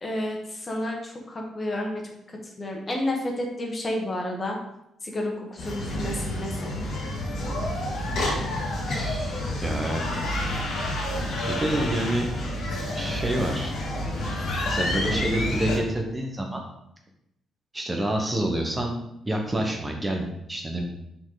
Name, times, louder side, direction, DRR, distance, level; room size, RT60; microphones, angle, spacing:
voice 1, 0.0-2.0 2.4-4.6 5.0-6.7, left 1 dB, 30° left, 1 dB, 1.4 m, -30 dB
sound 1, 5.6-15.8, left 1 dB, 70° left, 1.8 m, -29 dB
voice 2, 8.9-10.0 11.5-12.3 12.9-13.7 14.7-16.6 17.7-19.0 19.2-20.8, right 1 dB, 20° right, 1 dB, 1.1 m, -28 dB
5.7 x 4.5 x 4.0 m, 0.79 s
cardioid pair, 90°, 0 cm